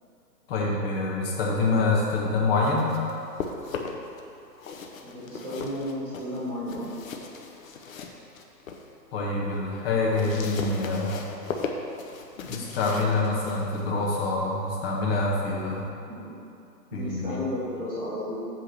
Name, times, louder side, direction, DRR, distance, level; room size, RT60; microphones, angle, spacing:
voice 1, 0.5-3.0 9.1-11.2 12.4-15.9 16.9-17.4, left 3 dB, 35° left, -3 dB, 1.5 m, -26 dB
sound 1, 2.4-4.2 4.5-8.9 9.3-15.9, left 4 dB, 55° left, 0.9 m, -38 dB
voice 2, 5.0-6.9 16.1-16.3 16.9-18.4, left 1 dB, 10° right, -12 dB, 0.5 m, -33 dB
8.3 x 3.8 x 6.0 m, 2.7 s
hypercardioid pair, 135°, 49 cm